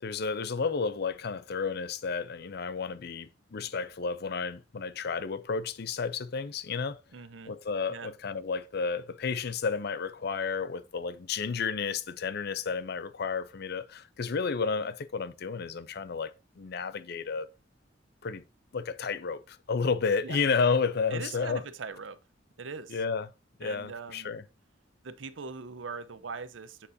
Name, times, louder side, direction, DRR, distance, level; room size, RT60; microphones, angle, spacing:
voice 1, 0.0-7.0 7.5-17.5 18.2-18.4 18.7-21.6 22.9-23.3 23.6-24.4, left 5 dB, 60° left, 0.5 m, -31 dB
voice 2, 7.1-7.5 7.9-8.1 20.2-20.4 21.1-22.2 22.6-23.0 23.6-24.3 25.0-26.9, right 5 dB, 90° right, 0.8 m, -41 dB
7.3 x 6.8 x 2.7 m
head